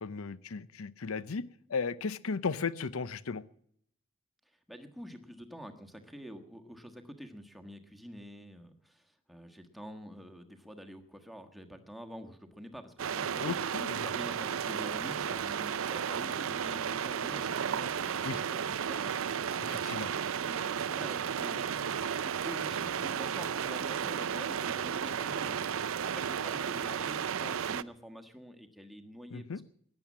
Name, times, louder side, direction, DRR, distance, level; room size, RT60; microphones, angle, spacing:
voice 1, 0.0-3.4 13.4-14.0 18.2-18.4 19.6-20.1 29.3-29.6, left 5 dB, 75° left, 17 dB, 0.6 m, -36 dB
voice 2, 4.7-25.6 25.9-29.6, equal, ahead, 7 dB, 1.4 m, -47 dB
sound 1, 13.0-27.8, right 7 dB, 65° right, 0.5 m, -33 dB
15.0 x 10.5 x 7.3 m, 0.66 s
head